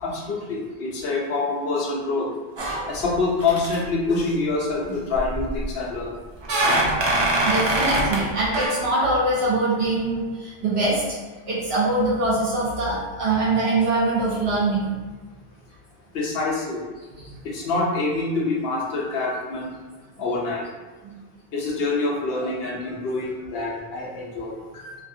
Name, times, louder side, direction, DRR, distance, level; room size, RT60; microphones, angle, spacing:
voice 1, 0.0-2.3 2.7-6.1 16.1-16.8 17.4-19.7 20.2-20.6 21.5-25.0, left 3 dB, 75° left, -3 dB, 0.9 m, -26 dB
sound 1, 2.6-3.2 3.4-3.8 5.1-5.7 6.4-8.3 8.5-8.7, right 1 dB, 45° right, 0.3 m, -23 dB
voice 2, 7.4-11.0 11.5-14.9 17.2-17.3 21.1-21.2, right 2 dB, 80° right, -7 dB, 1.2 m, -23 dB
2.9 x 2.4 x 2.6 m, 1.3 s
omnidirectional pair, 1.0 m